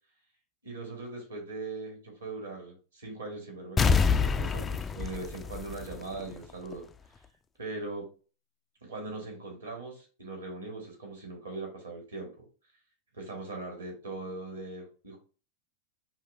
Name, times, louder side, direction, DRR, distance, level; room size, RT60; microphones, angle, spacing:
voice 1, 0.6-6.8 7.6-8.1 8.8-12.4 13.1-15.2, right 3 dB, 75° right, 1 dB, 2.0 m, -40 dB
sound 1, 3.8-6.4 6.7-6.8, left 5 dB, 20° left, 0.3 m, -26 dB
5.6 x 2.8 x 2.7 m, 0.37 s
figure-of-eight pair, 90°, 0 cm